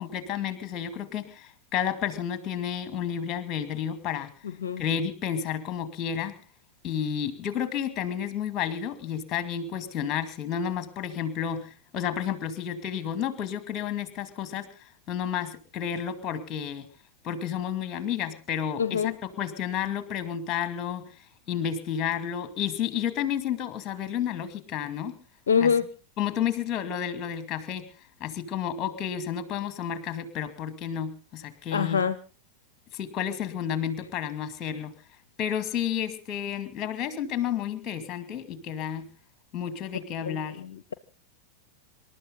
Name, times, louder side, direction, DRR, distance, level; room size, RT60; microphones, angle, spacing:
voice 1, 0.0-4.4 4.8-6.4 6.8-16.9 17.2-25.1 25.6-25.7 26.2-27.8 28.2-32.0 32.9-34.9 35.4-39.1 39.5-40.6, left 9 dB, 30° left, 10 dB, 2.4 m, -31 dB
voice 2, 18.8-19.1 25.5-25.9 31.7-32.2 40.3-40.9, left 6 dB, 65° left, 14 dB, 0.7 m, -25 dB
27.0 x 12.5 x 4.0 m, 0.36 s
figure-of-eight pair, 90°, 0 cm